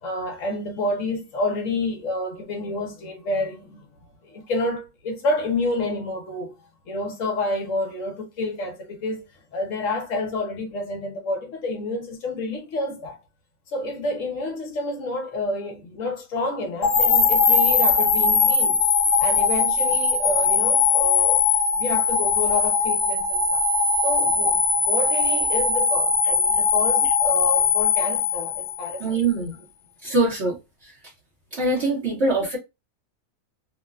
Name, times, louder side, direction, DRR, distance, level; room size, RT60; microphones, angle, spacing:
voice 1, 0.0-3.9 4.2-6.5 6.9-9.2 9.5-13.2 13.7-18.8 19.2-21.4 21.7-23.6 24.0-29.0, left 2 dB, 65° left, 1.1 m, -29 dB
sound 1, 16.8-29.0, left 5 dB, 90° left, 1.2 m, -20 dB
voice 2, 29.0-29.5 30.0-31.1 31.5-32.6, right 2 dB, 55° right, 1.0 m, -24 dB
3.0 x 2.1 x 2.2 m
omnidirectional pair, 1.5 m